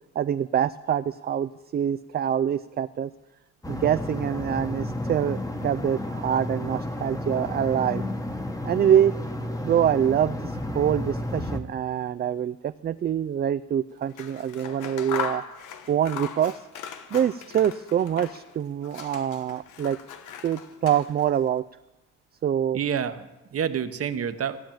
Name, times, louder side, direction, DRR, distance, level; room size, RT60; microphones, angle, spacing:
voice 1, 0.2-3.1 3.7-8.0 8.6-9.1 9.6-15.4 15.9-16.7 17.1-20.0 20.4-21.6 22.4-22.8, right 9 dB, 35° right, 11 dB, 0.4 m, -25 dB
Quiet Neighborhood Ambience (light wind no people), 3.6-11.6, left 1 dB, 10° left, 1.2 m, -32 dB
Scissors, 14.0-18.5 18.8-21.4, left 7 dB, 85° left, 1.1 m, -38 dB
voice 2, 22.7-24.6, right 8 dB, 50° right, 10 dB, 1.0 m, -28 dB
16.0 x 7.1 x 9.0 m, 1.0 s
cardioid pair, 90°, 30 cm